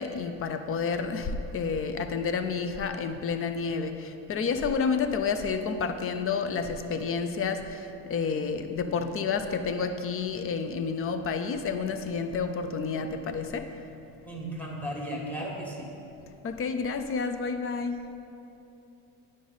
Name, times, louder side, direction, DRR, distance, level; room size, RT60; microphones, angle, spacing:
voice 1, 0.0-13.9 16.4-18.0, left 5 dB, 30° left, 8 dB, 0.5 m, -30 dB
voice 2, 14.2-15.9, right 1 dB, 5° left, -2 dB, 1.5 m, -35 dB
9.2 x 5.2 x 3.9 m, 2.9 s
hypercardioid pair, 80°, 46 cm